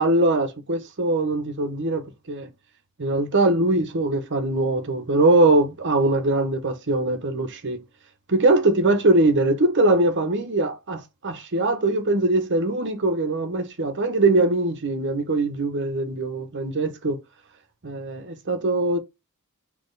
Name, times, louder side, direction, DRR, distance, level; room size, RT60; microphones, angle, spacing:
voice 1, 0.0-2.5 3.0-7.8 8.3-17.2 17.8-19.0, right 2 dB, 55° right, 1.0 m, -22 dB
4.3 x 3.0 x 3.8 m
head